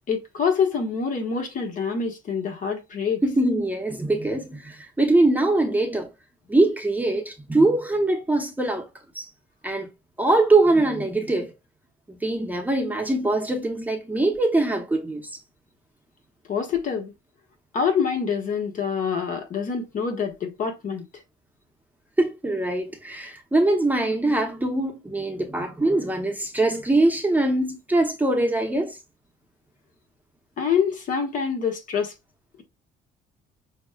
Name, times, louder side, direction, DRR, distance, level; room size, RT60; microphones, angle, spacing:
voice 1, 0.1-3.2 16.5-17.1 17.7-21.0 30.6-32.1, left 6 dB, 50° left, 1.2 m, -26 dB
voice 2, 3.2-6.1 6.5-8.9 9.1-9.3 9.6-9.9 10.2-11.5 12.1-15.3 22.2-29.0, right 2 dB, 10° right, 0.8 m, -22 dB
6.1 x 2.1 x 2.3 m
cardioid pair, 110°, 17 cm